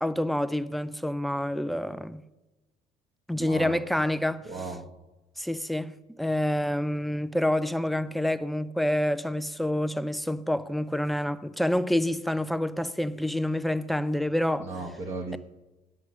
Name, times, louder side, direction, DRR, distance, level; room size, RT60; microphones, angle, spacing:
voice 1, 0.0-2.2 3.3-4.5 5.4-14.7, left 1 dB, ahead, 0.4 m, -27 dB
voice 2, 3.3-3.8 4.4-4.9 14.6-15.4, right 3 dB, 35° right, 1.3 m, -36 dB
9.6 x 8.2 x 6.1 m
cardioid pair, 110°, 17 cm